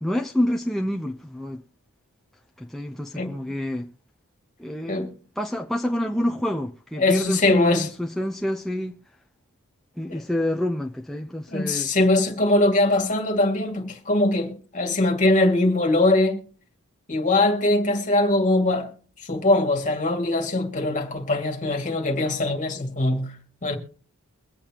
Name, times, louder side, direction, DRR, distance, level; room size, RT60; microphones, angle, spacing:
voice 1, 0.0-1.6 2.6-3.9 4.6-5.1 5.4-9.0 10.0-11.9, left 1 dB, ahead, 0.6 m, -27 dB
voice 2, 7.0-7.9 10.1-10.2 11.5-16.4 17.1-18.9 19.3-23.8, left 2 dB, 35° left, 2.2 m, -22 dB
23.5 x 8.4 x 2.9 m
head